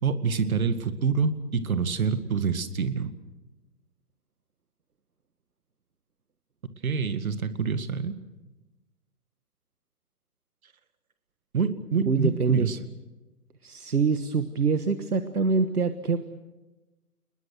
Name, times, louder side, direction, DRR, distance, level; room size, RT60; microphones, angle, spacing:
voice 1, 0.0-3.1 6.8-8.1 11.5-12.8, right 5 dB, 65° right, 11 dB, 2.1 m, -26 dB
voice 2, 12.0-12.7 13.6-16.2, right 4 dB, 80° right, 10 dB, 1.5 m, -25 dB
29.5 x 21.0 x 6.5 m, 1.1 s
figure-of-eight pair, 125°, 45 cm